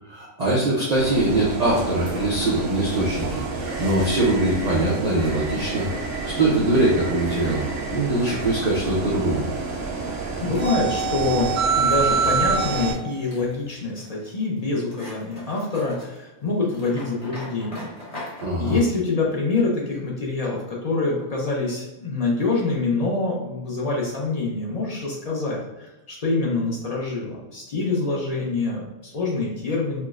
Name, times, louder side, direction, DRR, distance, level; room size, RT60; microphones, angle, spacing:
voice 1, 0.1-3.4 3.8-5.9 6.3-7.6 7.9-9.4 18.4-18.8, right 2 dB, 55° right, -5 dB, 0.4 m, -22 dB
sound 1, 0.9-12.9, right 4 dB, 75° right, 1.0 m, -27 dB
voice 2, 10.0-17.9 18.6-30.0, left 3 dB, 65° left, -3 dB, 0.4 m, -26 dB
sound 2, 10.5-18.5, left 1 dB, 25° left, 1.0 m, -42 dB
4.4 x 2.0 x 2.3 m, 1.0 s
omnidirectional pair, 1.4 m